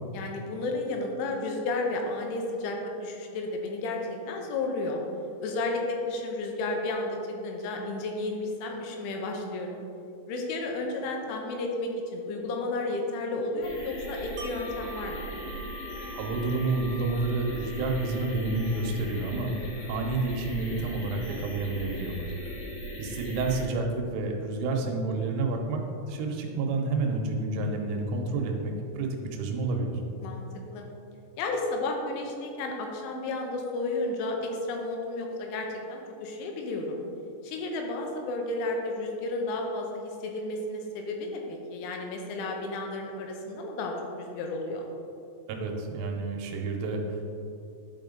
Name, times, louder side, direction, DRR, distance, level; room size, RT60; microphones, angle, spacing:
voice 1, 0.1-5.0 5.4-9.8 10.3-15.2 30.2-30.5 30.7-30.9 31.4-37.0 37.4-44.8, left 2 dB, 85° left, 1 dB, 3.2 m, -32 dB
sound 1, 13.6-23.6, right 1 dB, 55° left, 2.1 m, -38 dB
Wind chime, 14.4-20.2 20.6-20.7, left 1 dB, 60° right, 2.7 m, -46 dB
voice 2, 16.1-19.5 19.9-22.3 23.0-29.9 45.5-47.2, right 3 dB, 85° right, 2 dB, 3.4 m, -29 dB
11.0 x 5.1 x 3.8 m, 2.6 s
omnidirectional pair, 5.5 m